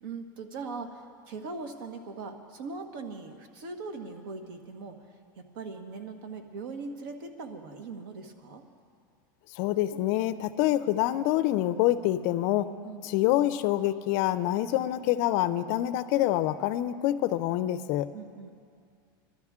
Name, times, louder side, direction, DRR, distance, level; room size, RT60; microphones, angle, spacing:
voice 1, 0.0-5.0 5.4-8.6 12.8-13.1 18.1-18.5, right 4 dB, 70° right, 6 dB, 1.4 m, -40 dB
voice 2, 9.5-12.7 13.0-18.1, left 14 dB, 45° left, 13 dB, 0.4 m, -26 dB
22.5 x 12.5 x 3.6 m, 2.3 s
supercardioid pair, 165°, 12 cm